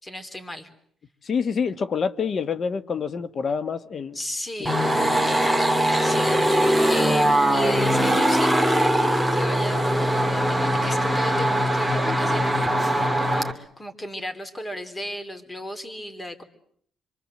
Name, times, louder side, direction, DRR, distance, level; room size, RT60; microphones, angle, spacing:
voice 1, 0.0-0.7 4.1-5.0 6.0-16.4, left 1 dB, 20° left, 3.7 m, -35 dB
voice 2, 1.2-4.2 4.6-4.7, left 6 dB, 50° left, 1.5 m, -27 dB
sound 1, 4.6-13.5, equal, ahead, 2.5 m, -21 dB
26.5 x 24.0 x 7.8 m
cardioid pair, 90°, 0 cm